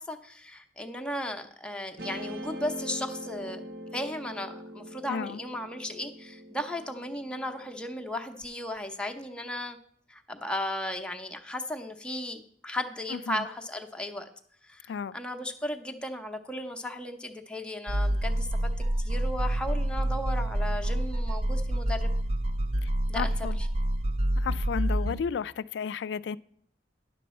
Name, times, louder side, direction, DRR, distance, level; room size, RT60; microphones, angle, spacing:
voice 1, 0.0-3.6 3.9-9.8 10.1-14.3 14.7-18.7 19.0-22.1 23.1-23.3, left 1 dB, 5° left, 0.7 m, -35 dB
Guitar, 2.0-8.4, equal, 55° right, 1.0 m, -42 dB
voice 2, 5.1-5.4 13.1-13.5 14.9-15.2 22.8-23.6 24.4-26.4, left 6 dB, 65° left, 0.3 m, -33 dB
sound 1, 17.9-25.2, right 1 dB, 35° right, 0.4 m, -28 dB
10.0 x 6.6 x 4.2 m
head